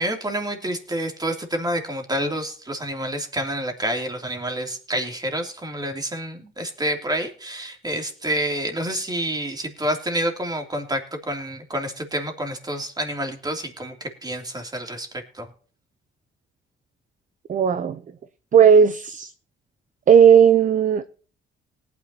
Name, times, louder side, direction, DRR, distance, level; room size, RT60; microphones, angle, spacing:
voice 1, 0.0-15.1 15.3-15.5, right 1 dB, 20° right, 2.9 m, -28 dB
voice 2, 17.5-18.0 18.5-19.3 20.1-21.1, right 7 dB, 40° right, 0.7 m, -15 dB
18.5 x 9.5 x 2.9 m
cardioid pair, 90°, 20 cm